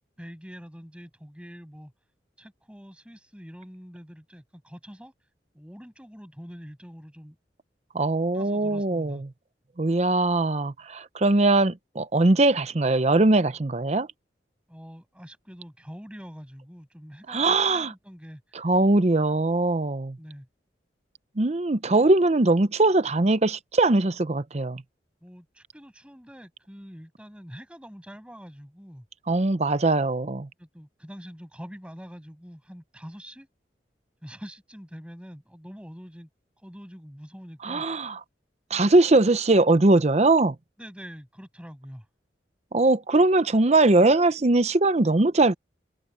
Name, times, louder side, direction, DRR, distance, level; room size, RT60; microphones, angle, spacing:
voice 1, 0.2-1.9 2.4-5.3 5.5-7.4 8.3-9.2 14.7-18.6 20.2-20.5 25.2-29.1 30.6-33.5 34.2-36.3 36.6-37.9 38.7-38.8 40.8-42.1, equal, 5° right, 7.0 m, -45 dB
voice 2, 7.9-9.2 9.8-14.1 17.3-17.9 18.5-20.2 21.4-24.8 29.3-30.5 37.6-38.2 38.7-40.5 42.7-45.5, right 2 dB, 40° right, 0.7 m, -21 dB
head